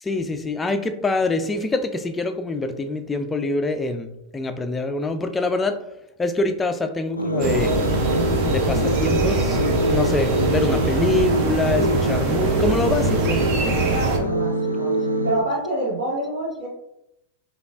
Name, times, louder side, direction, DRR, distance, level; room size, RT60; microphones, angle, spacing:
voice 1, 0.0-5.8 6.2-7.7 8.4-9.6 9.9-13.4, left 2 dB, 15° left, 7 dB, 0.3 m, -25 dB
sound 1, 7.2-15.3, equal, 80° left, 0.4 m, -24 dB
sound 2, 7.4-14.2, right 3 dB, 45° right, 0.6 m, -23 dB
voice 2, 13.9-14.9 15.2-16.7, right 1 dB, 70° right, -8 dB, 1.2 m, -27 dB
5.1 x 2.3 x 2.4 m, 0.83 s
figure-of-eight pair, 90°, 0 cm